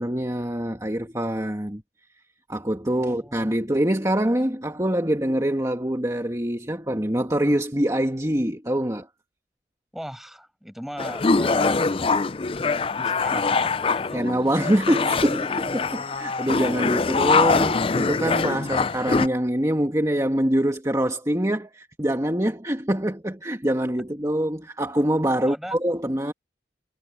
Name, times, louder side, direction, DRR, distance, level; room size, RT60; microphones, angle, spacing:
voice 1, 0.0-1.8 2.5-9.1 14.1-26.3, right 1 dB, 20° right, 2.2 m, -24 dB
voice 2, 2.9-3.5 9.9-11.8 13.0-14.3 16.1-16.2 25.4-25.8, equal, ahead, 8.0 m, -38 dB
sound 1, 11.0-19.3, left 4 dB, 30° left, 0.5 m, -23 dB
head